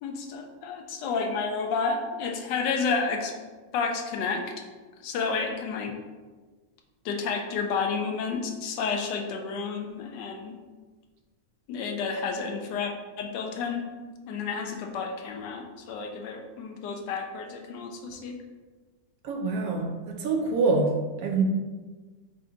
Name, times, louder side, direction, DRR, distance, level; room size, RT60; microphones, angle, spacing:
voice 1, 0.0-3.3 3.7-4.4 5.0-5.9 7.0-10.6 11.7-12.9 13.2-13.9 14.3-18.4, left 5 dB, 85° left, 3 dB, 1.2 m, -30 dB
voice 2, 19.2-21.4, right 4 dB, 70° right, 2 dB, 1.0 m, -26 dB
3.6 x 3.4 x 3.8 m, 1.3 s
omnidirectional pair, 1.9 m